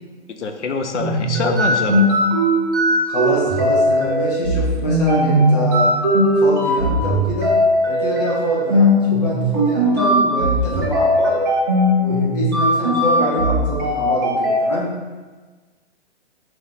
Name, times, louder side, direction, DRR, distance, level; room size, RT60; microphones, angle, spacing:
voice 1, 0.3-2.2, left 4 dB, 85° left, 6 dB, 0.7 m, -25 dB
sound 1, 0.9-14.6, equal, 20° right, 0.5 m, -18 dB
voice 2, 3.1-5.9 6.4-7.5 7.9-11.4 12.0-14.9, left 1 dB, 35° left, -5 dB, 1.3 m, -25 dB
4.7 x 2.9 x 3.7 m, 1.3 s
hypercardioid pair, 165°, 34 cm